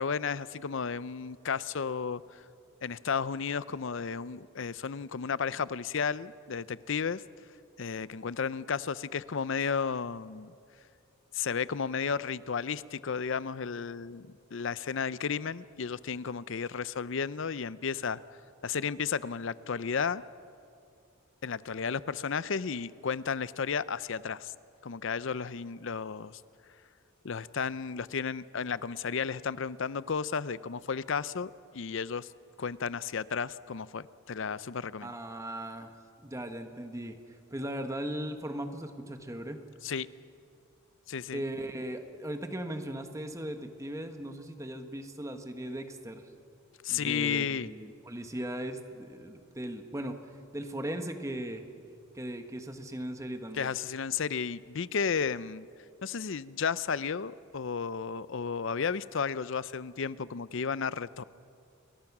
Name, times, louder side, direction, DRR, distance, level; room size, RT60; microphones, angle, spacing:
voice 1, 0.0-2.4 2.8-7.2 7.8-10.5 11.3-18.2 18.6-20.2 21.4-24.5 24.8-26.4 27.2-32.3 32.6-35.1 39.8-40.1 41.1-41.4 46.8-47.7 53.6-55.7 56.0-61.2, left 6 dB, 60° left, 17 dB, 0.6 m, -33 dB
voice 2, 35.0-35.9 36.2-37.2 37.5-39.6 41.3-46.3 46.9-50.2 50.5-51.6 52.1-53.7, right 1 dB, 15° right, 6 dB, 1.4 m, -38 dB
29.5 x 22.5 x 6.1 m, 2.5 s
head